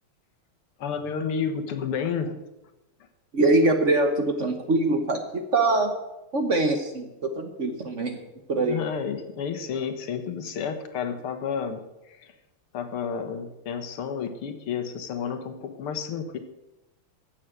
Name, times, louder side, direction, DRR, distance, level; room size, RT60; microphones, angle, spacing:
voice 1, 0.8-2.4 8.6-12.3 12.7-16.4, left 6 dB, 90° left, 9 dB, 2.1 m, -31 dB
voice 2, 3.3-5.9 6.3-8.2 8.5-8.8, right 2 dB, 45° right, 6 dB, 1.2 m, -23 dB
14.5 x 7.4 x 8.0 m, 0.98 s
omnidirectional pair, 2.3 m